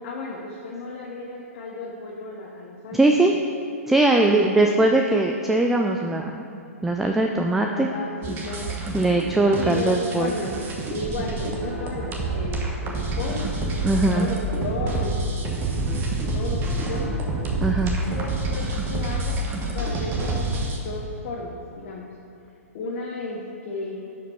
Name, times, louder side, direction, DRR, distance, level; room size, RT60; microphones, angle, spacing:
voice 1, 0.0-3.4 4.1-4.8 7.7-8.7 9.6-10.6 10.9-13.5 13.8-15.8 16.3-17.3 18.0-19.4 19.7-22.1 22.7-23.9, left 3 dB, 45° left, -3 dB, 1.1 m, -34 dB
voice 2, 2.9-3.3 3.9-6.5 6.8-7.9 8.9-10.3 13.8-14.3 17.6-18.0, right 2 dB, 5° right, 2 dB, 0.3 m, -20 dB
sound 1, 8.2-20.8, right 2 dB, 25° right, 1.2 m, -28 dB
10.5 x 5.1 x 4.5 m, 2.8 s
hypercardioid pair, 135°, 8 cm